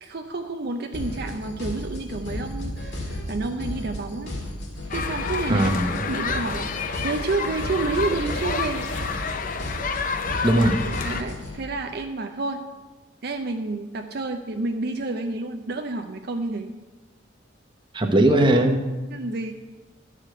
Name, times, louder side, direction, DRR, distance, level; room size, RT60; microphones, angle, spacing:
voice 1, 0.0-4.4 4.9-5.7 6.1-8.8 11.0-12.6 13.2-16.7 19.1-19.5, right 3 dB, 55° right, 4 dB, 0.6 m, -29 dB
sound 1, 0.9-11.6, left 1 dB, 60° left, 2.4 m, -34 dB
sound 2, 4.7-9.7, left 2 dB, 80° left, 2.0 m, -44 dB
sound 3, 4.9-11.2, left 5 dB, 45° left, 0.6 m, -29 dB
voice 2, 5.5-5.9 10.4-10.8 17.9-18.8, right 1 dB, 25° right, 4 dB, 1.0 m, -19 dB
12.5 x 5.0 x 7.7 m, 1.2 s
head